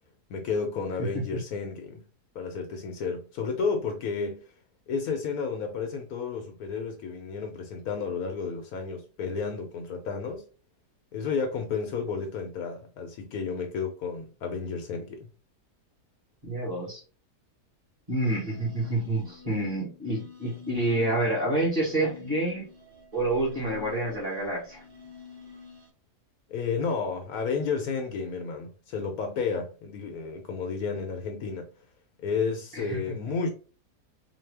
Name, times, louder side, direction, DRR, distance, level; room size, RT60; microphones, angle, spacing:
voice 1, 0.3-2.0 2.3-4.4 4.9-10.4 11.1-15.3 26.5-31.7 32.2-33.5, left 5 dB, 70° left, 1.0 m, -32 dB
voice 2, 1.0-1.4 16.4-17.0 18.1-22.7 23.1-24.8 32.7-33.2, right 1 dB, 25° right, 1.7 m, -28 dB
sound 1, 18.2-25.9, left 6 dB, 45° right, 0.8 m, -47 dB
4.0 x 2.3 x 3.3 m
omnidirectional pair, 1.7 m